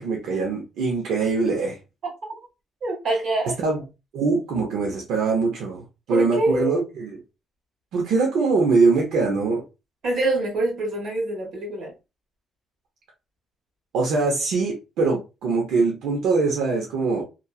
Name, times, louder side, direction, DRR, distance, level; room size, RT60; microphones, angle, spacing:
voice 1, 0.0-1.8 3.6-3.8 4.1-7.2 7.9-9.6 13.9-17.2, right 4 dB, 85° right, 0.8 m, -23 dB
voice 2, 2.0-2.4 2.8-3.6 6.1-6.8 10.0-11.9, right 2 dB, 60° right, 1.6 m, -25 dB
2.9 x 2.4 x 2.4 m
cardioid pair, 155°, 0 cm